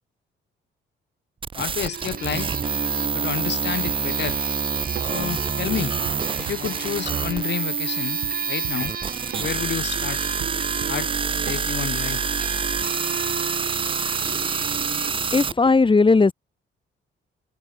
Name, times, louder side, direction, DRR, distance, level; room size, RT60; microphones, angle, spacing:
sound 1, 1.4-15.5, right 5 dB, 25° right, 0.6 m, -27 dB
voice 1, 1.6-2.6 3.1-4.4 5.0-5.9 6.4-8.2 8.5-8.9 9.4-10.3 10.9-11.1 11.4-12.2, left 9 dB, 60° left, 4.4 m, -30 dB
sound 2, 1.8-15.1, right 7 dB, 45° right, 5.3 m, -35 dB
sound 3, 3.9-5.5 5.8-12.6, right 15 dB, 85° right, 7.0 m, -40 dB
voice 2, 14.2-16.3, left 4 dB, 25° left, 3.8 m, -20 dB
cardioid pair, 90°, 20 cm